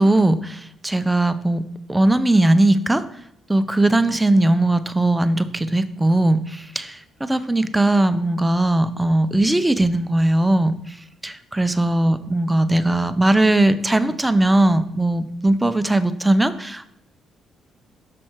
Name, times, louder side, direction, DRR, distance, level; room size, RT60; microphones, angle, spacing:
voice 1, 0.0-1.6 1.9-3.0 3.5-11.0 11.2-16.9, right 1 dB, 10° right, 11 dB, 0.5 m, -19 dB
6.2 x 5.5 x 4.4 m, 0.73 s
cardioid pair, 90°, 0 cm